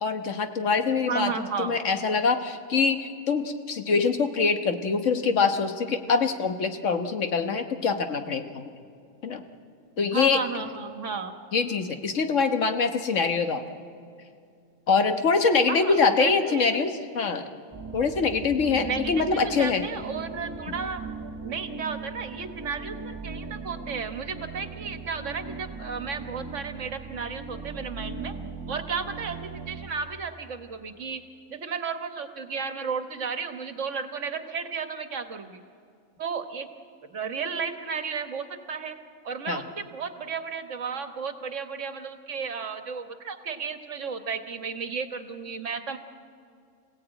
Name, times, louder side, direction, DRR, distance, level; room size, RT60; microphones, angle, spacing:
voice 1, 0.0-1.3 1.6-8.6 9.2-9.4 10.0-10.4 11.5-13.6 14.9-17.5 17.9-19.8 39.5-39.6, left 5 dB, 70° left, 7 dB, 1.6 m, -24 dB
voice 2, 1.1-1.7 10.1-11.3 15.7-16.8 18.8-21.0 21.4-28.3 28.7-31.2 31.5-35.6 36.2-36.7 37.0-39.0 39.2-46.0, right 5 dB, 70° right, 8 dB, 1.7 m, -33 dB
sound 1, 17.7-29.9, right 4 dB, 20° right, 1.5 m, -39 dB
26.5 x 17.0 x 9.0 m, 2.4 s
omnidirectional pair, 1.3 m